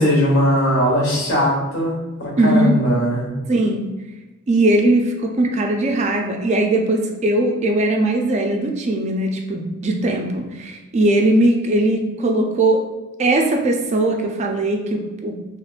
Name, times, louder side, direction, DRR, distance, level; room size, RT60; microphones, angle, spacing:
voice 1, 0.0-3.3, equal, 65° left, -4 dB, 1.2 m, -19 dB
voice 2, 2.4-2.7 3.5-3.9 4.5-12.8 13.2-15.6, right 1 dB, 30° right, 2 dB, 0.3 m, -19 dB
3.5 x 2.9 x 2.4 m, 1.1 s
head